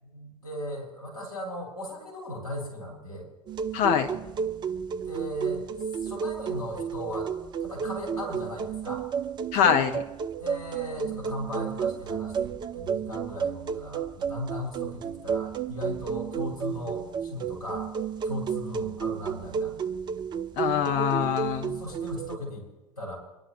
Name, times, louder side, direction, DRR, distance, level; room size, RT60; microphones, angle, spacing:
voice 1, 0.0-3.3 5.0-7.3 7.6-9.0 10.4-17.9 18.2-19.7 21.7-22.7 23.0-23.2, left 1 dB, 70° left, -3 dB, 6.6 m, -37 dB
sound 1, 3.5-22.4, right 7 dB, 20° right, 0.6 m, -32 dB
voice 2, 3.7-4.1 9.5-10.0 20.6-21.7, left 9 dB, 45° left, 6 dB, 1.2 m, -24 dB
25.0 x 12.0 x 3.2 m, 1.1 s
figure-of-eight pair, 85°, 20 cm